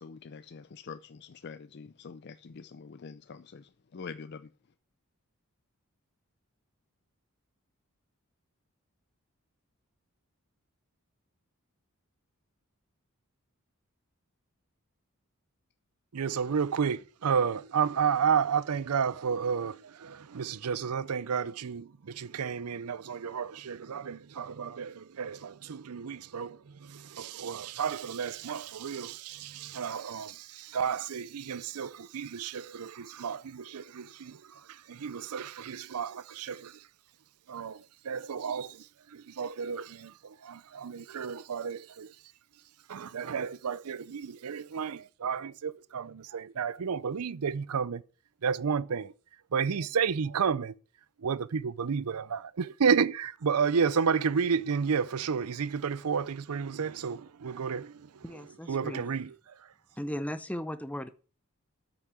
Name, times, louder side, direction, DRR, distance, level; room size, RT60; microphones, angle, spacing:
voice 1, 0.0-3.6 3.9-4.4, left 5 dB, 50° left, 0.5 m, -45 dB
voice 2, 16.1-26.6 26.9-34.4 34.9-36.7 37.5-37.8 38.1-38.8 39.1-42.1 42.9-48.0 48.4-49.1 49.5-50.7 51.2-57.9 58.7-59.4, right 6 dB, 85° right, 0.5 m, -31 dB
voice 3, 58.2-59.2 60.0-61.1, equal, 5° left, 0.6 m, -37 dB
8.5 x 5.9 x 8.2 m
head